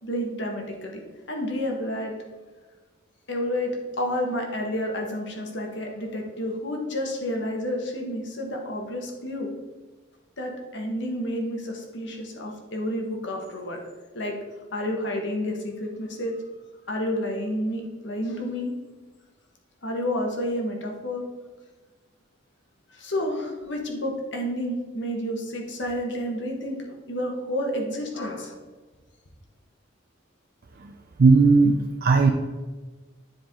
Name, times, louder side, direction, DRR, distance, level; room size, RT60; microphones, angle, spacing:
voice 1, 0.0-1.0 1.3-2.1 3.3-3.7 4.0-9.5 10.4-13.8 14.1-14.3 14.7-16.4 16.9-18.7 19.8-21.2 22.9-28.6, left 1 dB, 60° left, 1 dB, 1.5 m, -30 dB
voice 2, 31.2-32.3, right 4 dB, 50° right, 4 dB, 0.5 m, -17 dB
10.0 x 4.8 x 3.8 m, 1.3 s
head